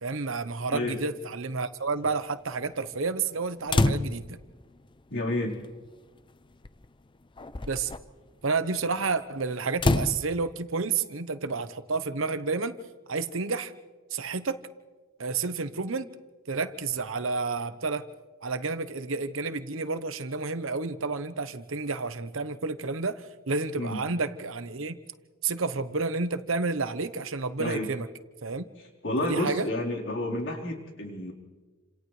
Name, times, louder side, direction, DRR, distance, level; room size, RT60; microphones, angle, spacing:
voice 1, 0.0-4.4 7.7-7.9 8.4-12.8 13.1-13.7 14.1-14.6 15.2-16.1 16.5-18.1 18.4-25.0 25.4-28.1 28.4-28.7 29.2-29.7, right 4 dB, 70° right, 11 dB, 1.0 m, -30 dB
sound 1, 3.7-4.4 5.6-5.7 6.6-6.9 7.4-8.0 9.8-10.2, left 2 dB, 25° left, 0.6 m, -26 dB
voice 2, 5.1-5.5 23.7-24.0 27.6-27.9 28.8-31.3, left 1 dB, 65° left, -1 dB, 4.3 m, -30 dB
29.5 x 27.0 x 3.3 m, 1.3 s
head